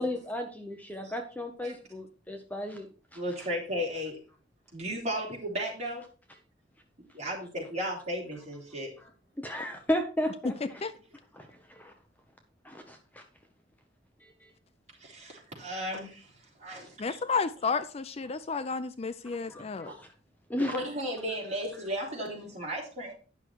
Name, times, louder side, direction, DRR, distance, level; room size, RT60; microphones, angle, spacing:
voice 1, 0.0-3.2 9.0-9.1 9.4-10.8 11.3-11.9 12.6-13.2 14.2-14.5 19.5-20.1 20.5-20.7, left 1 dB, 10° left, 0.8 m, -34 dB
voice 2, 3.2-4.2 4.7-6.0 7.1-8.9 15.0-16.3 16.6-17.0 19.9-20.0 20.7-23.1, equal, 35° right, 3.7 m, -35 dB
voice 3, 17.0-19.9, left 4 dB, 35° left, 0.4 m, -32 dB
10.0 x 6.2 x 4.6 m
head